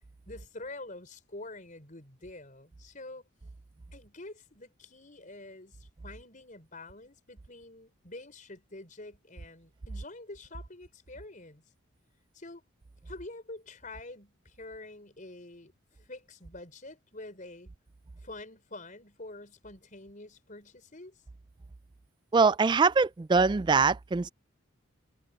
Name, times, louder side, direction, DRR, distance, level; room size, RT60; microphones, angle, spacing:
voice 1, 0.3-3.2 3.9-11.6 12.3-12.6 13.1-17.7 18.2-21.2, left 2 dB, 40° left, 5.5 m, -47 dB
voice 2, 22.3-24.3, right 4 dB, 20° right, 0.3 m, -23 dB
head